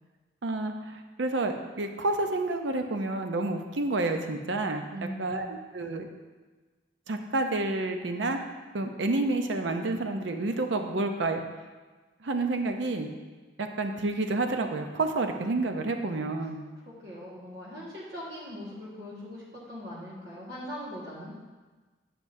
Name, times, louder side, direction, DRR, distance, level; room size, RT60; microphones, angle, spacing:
voice 1, 0.4-4.9 5.2-6.1 7.1-8.4 8.7-11.4 12.2-13.1 13.6-16.6, right 2 dB, 75° right, 5 dB, 0.6 m, -29 dB
voice 2, 4.9-5.5 16.8-21.3, equal, 60° right, -6 dB, 1.6 m, -40 dB
9.3 x 6.0 x 2.7 m, 1.3 s
head